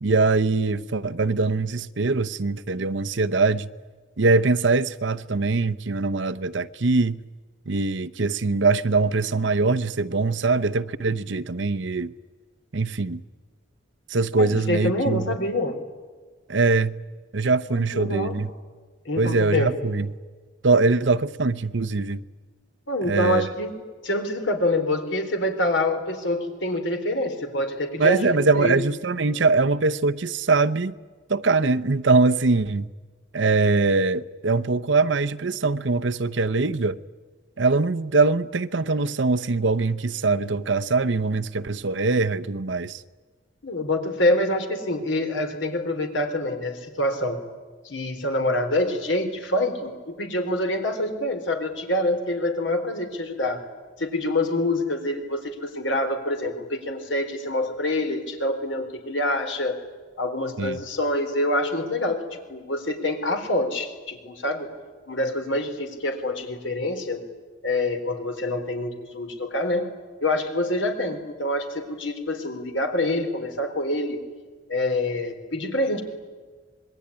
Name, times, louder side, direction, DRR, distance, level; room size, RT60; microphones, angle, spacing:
voice 1, 0.0-3.7 4.2-7.2 7.7-12.1 12.7-13.2 14.1-15.4 16.5-17.0 17.3-18.5 19.2-20.1 20.6-22.2 23.0-23.5 28.0-30.9 31.3-32.9 33.3-37.0 37.6-43.0 60.6-60.8, right 3 dB, 70° right, 0.8 m, -22 dB
voice 2, 14.4-15.8 17.7-18.4 19.1-19.8 22.9-23.7 24.0-28.8 43.6-47.4 47.8-53.6 54.0-59.8 60.2-64.7 65.1-67.2 67.6-69.9 70.2-74.2 74.7-76.0, left 1 dB, 75° left, 3.9 m, -26 dB
26.5 x 21.5 x 9.9 m
head